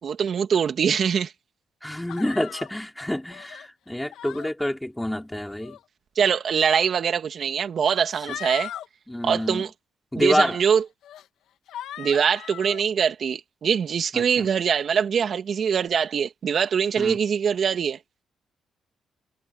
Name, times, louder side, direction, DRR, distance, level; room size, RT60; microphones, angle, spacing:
voice 1, 0.0-1.3 6.2-8.7 9.2-9.7 10.1-10.8 12.0-18.0, right 7 dB, 55° right, 2.5 m, -23 dB
voice 2, 1.8-5.8 9.1-9.7 10.1-10.6 14.1-14.5 17.0-17.2, left 1 dB, 5° left, 4.7 m, -27 dB
sound 1, 2.1-2.7 3.3-3.7 4.1-4.5 5.4-5.8 6.8-6.9 7.8-8.9 9.3-9.6 10.3-10.4 11.0-11.3 11.7-12.8, left 11 dB, 80° left, 2.2 m, -39 dB
cardioid pair, 90°, 0 cm